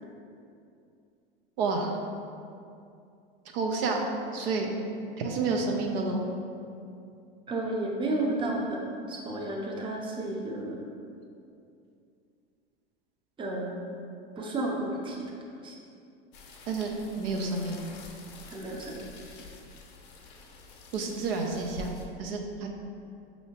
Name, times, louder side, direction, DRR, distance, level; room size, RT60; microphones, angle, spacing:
voice 1, 1.6-1.9 3.5-4.0 4.3-4.7 5.2-6.2 16.7-17.8 20.9-22.7, right 3 dB, 70° right, 1 dB, 0.6 m, -30 dB
voice 2, 7.5-10.9 13.4-13.8 14.4-15.2 15.6-15.7 18.5-19.1, right 2 dB, 15° right, -2 dB, 0.6 m, -32 dB
sound 1, 16.3-22.1, left 3 dB, 50° left, 0.7 m, -47 dB
5.4 x 2.8 x 2.8 m, 2.5 s
hypercardioid pair, 95°, 30 cm